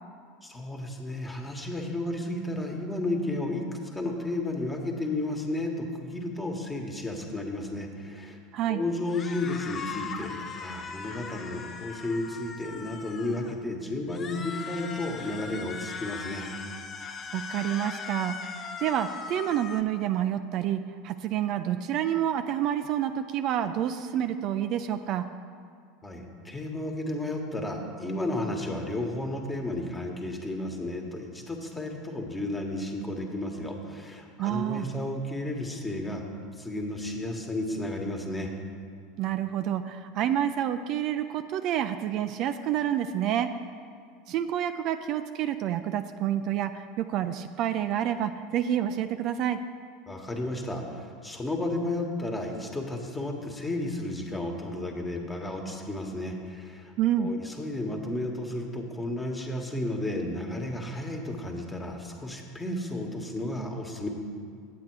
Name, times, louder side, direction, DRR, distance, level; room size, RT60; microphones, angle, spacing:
voice 1, 0.4-3.6 3.9-8.4 8.7-16.5 26.0-36.2 36.6-38.5 50.1-64.1, left 1 dB, 15° left, 2 dB, 1.3 m, -33 dB
sound 1, 9.1-13.6 14.1-19.8, left 5 dB, 35° left, 0.7 m, -39 dB
voice 2, 17.3-25.3 34.4-34.9 39.2-43.5 44.3-49.6 57.0-57.3, right 10 dB, 50° right, 9 dB, 0.3 m, -28 dB
8.3 x 8.0 x 4.6 m, 2.2 s
hypercardioid pair, 85°, 0 cm